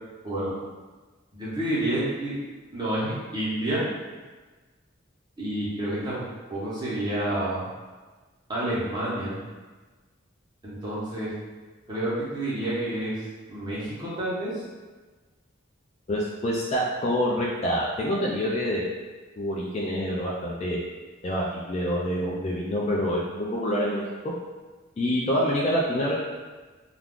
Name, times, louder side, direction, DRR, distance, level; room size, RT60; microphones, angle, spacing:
voice 1, 1.3-2.4 2.7-3.8 5.4-7.7 8.5-9.4 10.6-11.3 11.9-13.2 13.5-14.6, right 1 dB, 20° right, -9 dB, 0.8 m, -29 dB
voice 2, 16.1-18.9 19.4-20.8 21.2-24.3 25.0-26.1, equal, 30° left, -4 dB, 0.3 m, -26 dB
2.4 x 2.3 x 3.5 m, 1.3 s
head